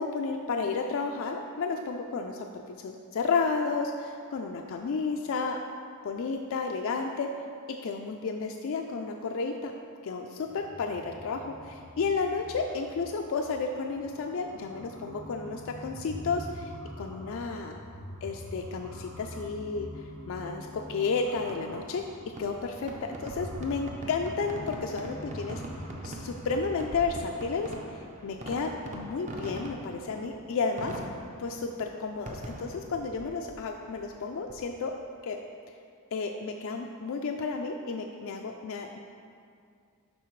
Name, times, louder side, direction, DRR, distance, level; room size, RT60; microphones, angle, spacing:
voice 1, 0.0-5.6 6.0-7.3 7.7-9.7 10.0-17.8 18.2-22.0 22.4-22.9 23.2-31.0 31.4-34.9 35.2-35.4 36.1-39.0, left 4 dB, 65° left, 3 dB, 0.4 m, -32 dB
sound 1, 10.4-27.0, equal, 75° right, 1.0 m, -44 dB
Fireworks, 21.5-35.0, right 1 dB, 35° right, 0.6 m, -43 dB
11.5 x 4.3 x 3.1 m, 2.3 s
head